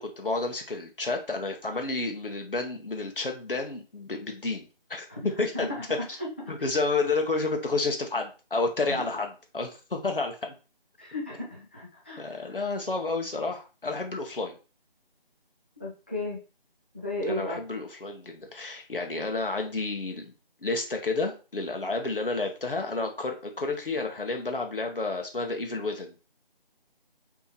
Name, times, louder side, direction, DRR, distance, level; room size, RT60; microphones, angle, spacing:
voice 1, 0.0-5.7 6.1-6.2 6.5-9.3 9.5-10.5 12.2-14.5 17.3-20.3 20.6-26.1, left 3 dB, 65° left, 3 dB, 1.6 m, -30 dB
voice 2, 11.0-12.5 15.8-16.4 16.9-17.6, left 2 dB, 10° left, -4 dB, 0.7 m, -34 dB
5.9 x 3.6 x 4.6 m, 0.33 s
figure-of-eight pair, 160°, 29 cm